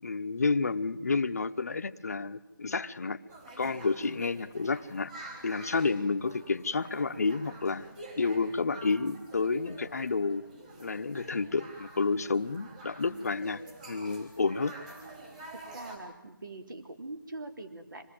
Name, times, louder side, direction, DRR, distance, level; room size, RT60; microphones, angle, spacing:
voice 1, 0.0-3.2 3.6-5.1 5.4-7.9 8.2-10.4 10.8-14.8, left 4 dB, 45° left, 9 dB, 0.9 m, -30 dB
sound 1, 3.3-16.0, right 2 dB, 20° right, 4.0 m, -48 dB
voice 2, 15.5-18.1, right 2 dB, 65° right, 4 dB, 3.4 m, -43 dB
26.0 x 19.5 x 7.7 m, 0.99 s
figure-of-eight pair, 170°, 12 cm